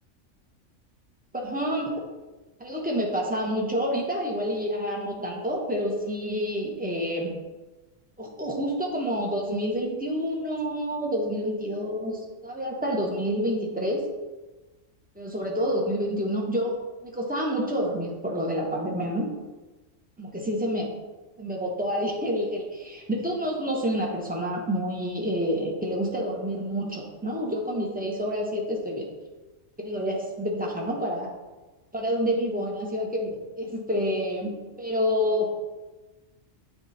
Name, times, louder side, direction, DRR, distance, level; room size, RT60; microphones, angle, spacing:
voice 1, 1.3-1.9 2.6-7.3 8.2-14.0 15.2-16.8 17.0-19.3 20.2-20.9 21.4-29.1 29.8-31.3 31.9-35.5, equal, 10° right, -1 dB, 0.8 m, -28 dB
8.1 x 3.3 x 4.1 m, 1.2 s
omnidirectional pair, 1.3 m